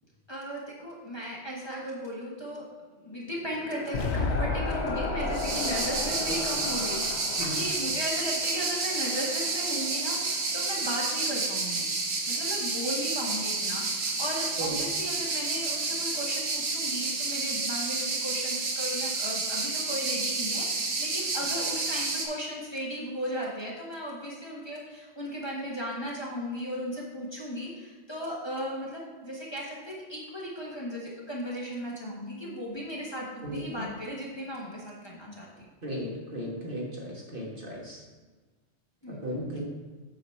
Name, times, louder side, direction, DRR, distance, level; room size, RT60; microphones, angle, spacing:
voice 1, 0.3-2.6 3.0-11.9 12.3-35.5 39.0-39.2, equal, 20° left, -5 dB, 1.3 m, -36 dB
sound 1, 3.0-10.9, left 2 dB, 35° left, 1.0 m, -38 dB
sound 2, 3.9-8.1, left 4 dB, 60° left, 0.8 m, -34 dB
sound 3, 5.3-22.3, right 3 dB, 70° right, 1.4 m, -30 dB
voice 2, 35.8-38.0 39.1-39.6, equal, 45° right, -3 dB, 1.7 m, -36 dB
7.9 x 4.0 x 5.6 m, 1.3 s
omnidirectional pair, 1.3 m